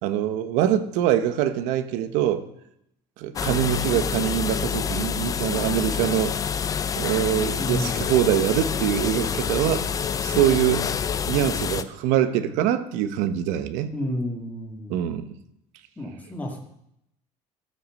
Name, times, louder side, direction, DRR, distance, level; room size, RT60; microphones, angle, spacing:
voice 1, 0.0-2.4 3.2-6.3 7.0-9.9 10.2-11.0 11.3-13.9 14.9-15.3, right 11 dB, 80° right, 1.1 m, -24 dB
sound 1, 3.4-11.8, left 7 dB, 30° left, 0.6 m, -27 dB
voice 2, 7.6-8.1 13.9-15.0 16.0-16.6, left 1 dB, 10° left, 2.2 m, -31 dB
14.0 x 8.0 x 6.5 m
cardioid pair, 135°, 12 cm